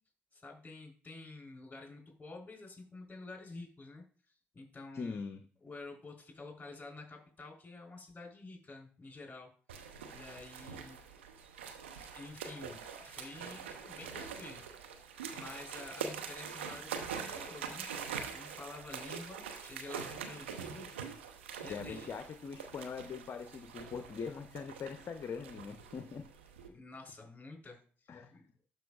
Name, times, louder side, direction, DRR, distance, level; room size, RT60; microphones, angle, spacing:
voice 1, 0.3-4.0 4.5-5.2 5.6-9.5 10.1-11.0 12.1-14.6 15.3-17.9 18.3-20.9 21.6-22.1 26.7-28.4, left 3 dB, 25° left, 0 dB, 3.5 m, -49 dB
voice 2, 4.9-5.4 21.7-26.2 28.1-28.3, left 5 dB, 45° left, 8 dB, 0.6 m, -42 dB
sound 1, 9.7-26.7, right 6 dB, 90° right, 0.7 m, -44 dB
12.0 x 5.3 x 2.4 m, 0.41 s
hypercardioid pair, 50°, 6 cm